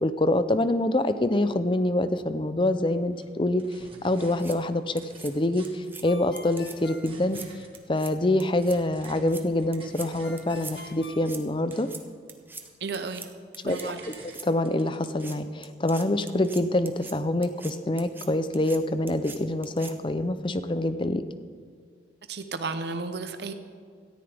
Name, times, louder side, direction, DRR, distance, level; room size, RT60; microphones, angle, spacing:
voice 1, 0.0-7.4 7.9-11.9 13.6-21.2, left 1 dB, 25° left, 11 dB, 0.6 m, -26 dB
sound 1, 3.1-3.2 3.6-4.4 4.8-5.9 6.3-7.8 8.2-11.0 11.4-12.1 12.4-13.3 13.7-15.2, right 3 dB, 30° right, 1.7 m, -51 dB
sound 2, 4.2-4.6 5.0-5.3 5.6-6.0 6.4-6.8 7.1-7.5 7.7-8.1 8.4-8.8 9.0-9.4 9.7-10.1 10.4-10.7 11.0-11.4 11.7-12.0 12.3-12.6 12.9-13.3 13.5-13.9 14.1-14.5 15.0-15.4 15.6-17.1 17.4-17.7 18.0-18.3 18.5-18.8 19.1-19.4 19.6-19.9, right 4 dB, 10° right, 0.7 m, -42 dB
Ringtone, 6.0-8.0 10.2-12.1, left 3 dB, 75° left, 0.9 m, -47 dB
voice 2, 12.8-13.3 13.6-14.0 22.3-23.5, right 4 dB, 65° right, 8 dB, 0.7 m, -33 dB
17.5 x 13.5 x 3.5 m, 2.1 s
head